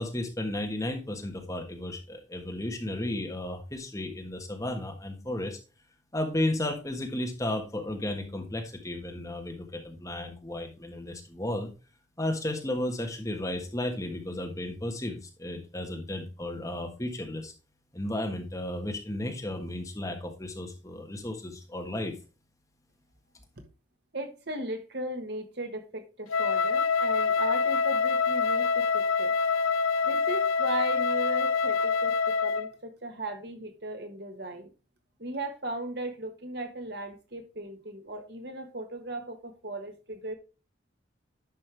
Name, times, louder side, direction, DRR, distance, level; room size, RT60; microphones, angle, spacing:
voice 1, 0.0-5.6 6.1-11.7 12.2-17.5 17.9-22.1, left 1 dB, 15° left, 1.4 m, -33 dB
voice 2, 24.1-29.3 30.0-34.7 35.2-40.3, right 1 dB, 55° right, 1.4 m, -37 dB
Wind instrument woodwind instrument, 26.3-32.7, left 5 dB, 90° left, 0.4 m, -26 dB
10.5 x 5.4 x 3.4 m
head